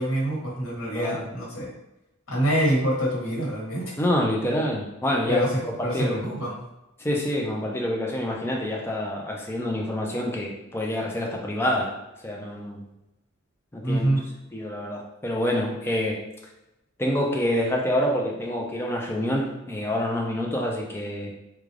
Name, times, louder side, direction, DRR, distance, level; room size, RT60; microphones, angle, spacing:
voice 1, 0.0-1.7 2.3-3.9 5.3-6.6 13.8-14.2, equal, 80° left, -4 dB, 1.2 m, -26 dB
voice 2, 4.0-5.5 5.8-6.2 7.0-11.9 12.2-12.8 13.7-14.1 14.5-16.2 17.0-21.3, left 1 dB, 10° left, -1 dB, 0.5 m, -27 dB
3.6 x 2.3 x 3.2 m, 0.95 s
head